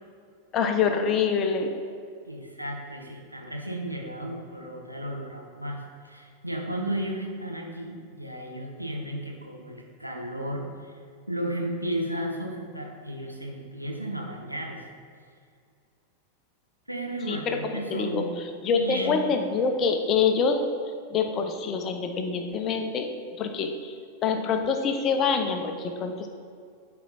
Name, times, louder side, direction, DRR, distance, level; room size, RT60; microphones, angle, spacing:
voice 1, 0.5-1.8 17.3-18.2 18.6-20.6 21.1-23.1 23.4-23.9 24.2-26.3, left 5 dB, 30° left, 5 dB, 0.8 m, -25 dB
voice 2, 2.3-11.0 11.3-14.8 16.9-18.3 18.7-19.4, right 1 dB, 90° right, 0 dB, 1.1 m, -34 dB
11.5 x 4.5 x 4.2 m, 2.3 s
figure-of-eight pair, 90°, 0 cm